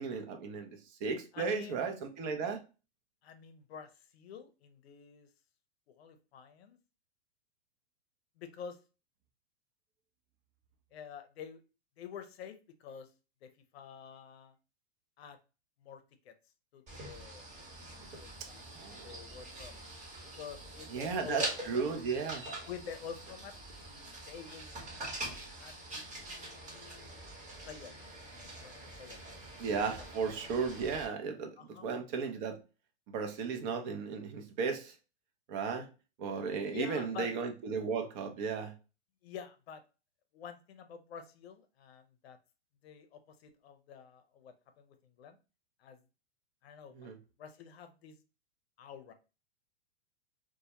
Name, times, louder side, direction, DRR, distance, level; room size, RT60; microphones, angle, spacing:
voice 1, 0.0-2.6 18.6-19.2 20.9-22.4 29.6-32.6 33.1-35.0 35.5-35.9 36.2-38.7 47.0-47.2, right 5 dB, 45° right, 0.6 m, -35 dB
voice 2, 1.3-1.8 3.2-5.3 5.9-6.8 8.4-8.8 10.9-11.6 12.0-13.1 13.4-14.6 15.2-15.4 15.8-16.3 16.7-17.5 18.1-18.7 18.9-19.7 20.3-21.8 22.7-23.5 23.8-25.2 25.6-27.3 27.7-27.9 28.3-29.2 29.6-29.7 30.0-30.1 31.6-31.9 36.6-37.3 39.2-39.8 40.3-42.4 42.8-45.4 45.8-46.0 46.6-47.1 47.4-48.2 48.8-49.1, left 7 dB, 65° left, 0.6 m, -48 dB
sound 1, 16.9-31.1, right 1 dB, 20° right, 0.9 m, -44 dB
2.2 x 2.1 x 2.8 m
hypercardioid pair, 120°, 33 cm